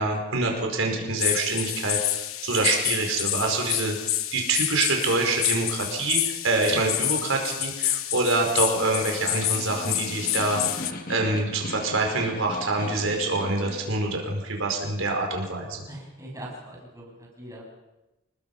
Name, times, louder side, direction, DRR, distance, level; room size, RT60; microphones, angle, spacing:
voice 1, 0.0-4.0 4.3-15.8, right 2 dB, 75° right, 1 dB, 5.1 m, -26 dB
sound 1, 1.2-10.9, left 13 dB, 85° left, 1.2 m, -28 dB
Snare drum, 9.1-14.0, left 2 dB, 40° left, 2.2 m, -39 dB
voice 2, 15.9-17.6, right 1 dB, 15° right, -2 dB, 7.1 m, -41 dB
30.0 x 20.5 x 5.6 m, 1.0 s
head